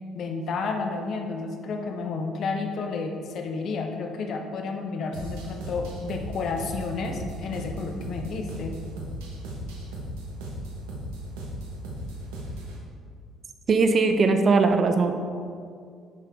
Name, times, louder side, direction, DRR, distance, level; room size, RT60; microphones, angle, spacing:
voice 1, 0.1-8.8, left 4 dB, 60° left, 4 dB, 1.0 m, -31 dB
sound 1, 5.1-12.8, right 1 dB, 80° right, 1.3 m, -36 dB
voice 2, 13.7-15.1, right 4 dB, 45° right, 7 dB, 0.7 m, -20 dB
10.0 x 5.7 x 3.6 m, 2.2 s
hypercardioid pair, 55°, 0 cm